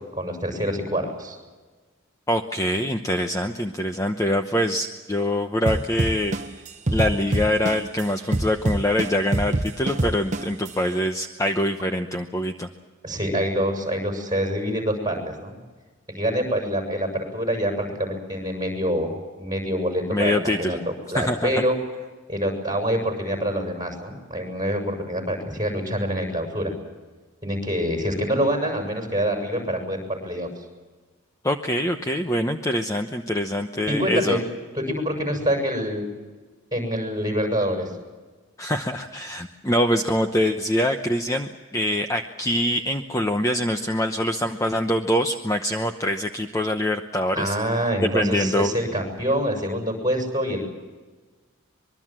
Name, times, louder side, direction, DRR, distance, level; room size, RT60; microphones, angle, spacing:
voice 1, 0.1-1.4 13.0-15.6 16.1-21.8 22.3-26.7 27.4-30.5 33.9-34.4 34.7-36.0 36.7-37.9 47.3-50.6, equal, 20° right, 2 dB, 6.8 m, -26 dB
voice 2, 2.3-6.3 6.9-12.7 20.1-20.8 21.1-21.6 31.4-34.4 38.6-47.5 48.0-48.7, left 1 dB, 15° left, 5 dB, 0.9 m, -24 dB
sound 1, 5.7-8.0 8.3-10.7, right 2 dB, 35° right, 0.9 m, -24 dB
25.0 x 22.5 x 7.6 m, 1.3 s
head